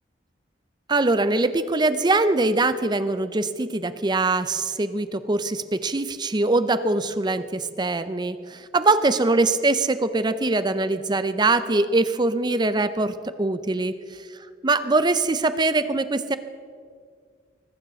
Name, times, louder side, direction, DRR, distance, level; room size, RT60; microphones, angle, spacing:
voice 1, 0.9-13.9 14.6-16.4, right 2 dB, 25° right, 12 dB, 0.6 m, -22 dB
20.5 x 7.3 x 6.3 m, 2.1 s
head